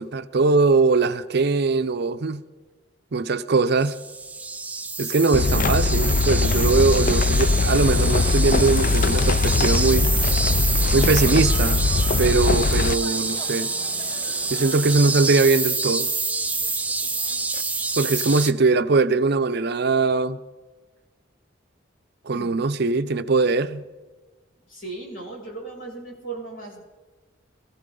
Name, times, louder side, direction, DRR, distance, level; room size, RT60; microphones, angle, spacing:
voice 1, 0.0-2.4 3.1-4.0 5.0-10.1 10.9-11.8 12.2-13.7 14.5-16.1 18.0-20.4 22.3-23.8, right 3 dB, 60° right, 0.6 m, -21 dB
sound 1, 3.8-18.5, right 3 dB, 10° right, 0.5 m, -27 dB
sound 2, 5.3-12.9, left 3 dB, 45° left, 0.4 m, -21 dB
sound 3, 7.7-15.6, left 1 dB, 15° left, 0.9 m, -42 dB
voice 2, 24.7-26.8, right 3 dB, 90° left, 6.8 m, -37 dB
23.5 x 15.0 x 3.9 m
head